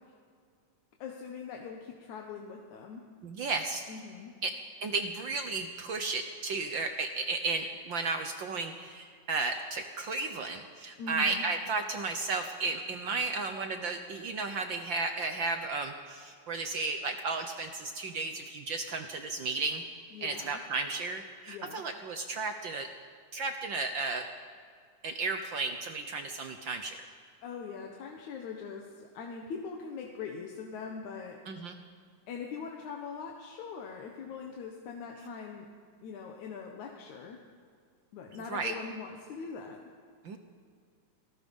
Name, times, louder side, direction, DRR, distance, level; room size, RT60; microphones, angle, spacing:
voice 1, 1.0-3.0 3.9-4.3 11.0-11.4 20.1-20.6 21.5-21.8 27.4-31.4 32.3-35.7 36.0-37.4 38.1-39.8, left 5 dB, 75° left, 1 dB, 2.7 m, -42 dB
voice 2, 3.2-3.8 4.4-4.5 4.8-19.8 20.2-22.9 23.3-24.3 25.0-27.0 31.5-31.8 38.5-38.7 40.2-40.4, right 3 dB, 65° right, 6 dB, 1.2 m, -34 dB
27.5 x 19.0 x 5.4 m, 2.1 s
omnidirectional pair, 3.5 m